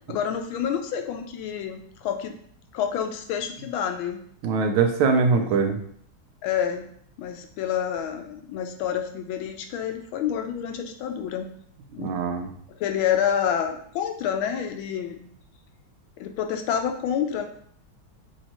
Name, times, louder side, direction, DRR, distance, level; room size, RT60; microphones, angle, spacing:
voice 1, 0.1-2.4 2.7-4.2 5.3-5.5 6.4-6.8 7.2-11.5 11.9-12.2 12.8-15.3 16.2-17.5, left 8 dB, 80° left, 6 dB, 1.3 m, -28 dB
voice 2, 4.4-5.8 12.0-12.5, right 5 dB, 85° right, 5 dB, 1.5 m, -22 dB
6.3 x 2.7 x 2.9 m, 0.62 s
omnidirectional pair, 2.3 m